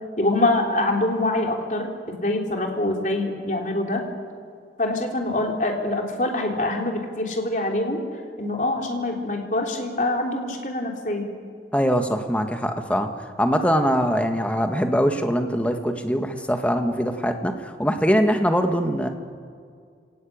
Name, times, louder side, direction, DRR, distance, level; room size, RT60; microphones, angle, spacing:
voice 1, 0.2-4.0 4.8-8.0 8.4-11.3, left 2 dB, 45° left, 2 dB, 3.6 m, -25 dB
voice 2, 11.7-13.1 13.4-19.1, equal, 5° left, 5 dB, 1.7 m, -22 dB
30.0 x 18.5 x 8.8 m, 2.2 s
head